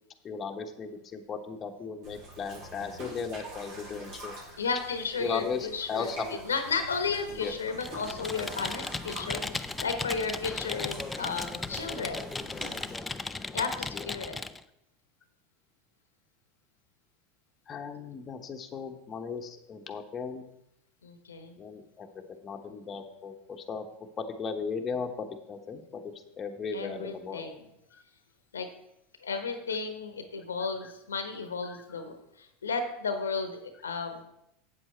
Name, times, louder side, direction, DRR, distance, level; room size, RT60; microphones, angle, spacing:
voice 1, 0.2-4.4 5.2-6.4 7.3-7.5 8.3-8.6 9.5-9.6 11.4-11.7 13.9-14.1 17.7-20.4 21.6-22.1 22.4-23.9 24.2-27.5 27.9-28.0 30.8-30.9 31.6-32.0, left 5 dB, 30° left, 4 dB, 1.1 m, -37 dB
sound 1, 2.0-13.0, right 1 dB, 55° right, 4.2 m, -46 dB
voice 2, 4.6-6.1 6.4-12.2 13.5-14.4 21.0-21.6 26.7-27.6 28.5-28.7 29.2-34.2, left 5 dB, 90° left, 8 dB, 1.0 m, -33 dB
Computer keyboard, 7.8-14.6, left 3 dB, 15° left, 0.5 m, -36 dB
8.2 x 7.8 x 4.4 m, 0.82 s
hypercardioid pair, 85°, 0 cm